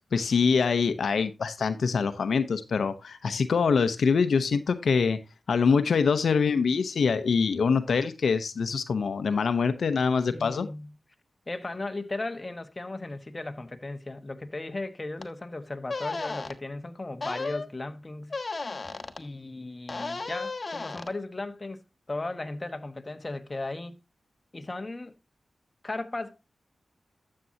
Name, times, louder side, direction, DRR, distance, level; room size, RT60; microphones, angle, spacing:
voice 1, 0.1-5.2 5.5-10.7, left 5 dB, 80° left, 0.8 m, -24 dB
voice 2, 10.3-10.9 11.5-18.4 19.2-21.8 22.1-24.0 24.5-25.1 25.8-26.4, left 2 dB, 30° left, 1.3 m, -36 dB
sound 1, 15.2-15.3 15.9-16.5 17.2-17.7 18.3-19.2 19.9-21.1, left 3 dB, 45° left, 1.4 m, -34 dB
12.0 x 7.6 x 2.8 m
cardioid pair, 55°, 0 cm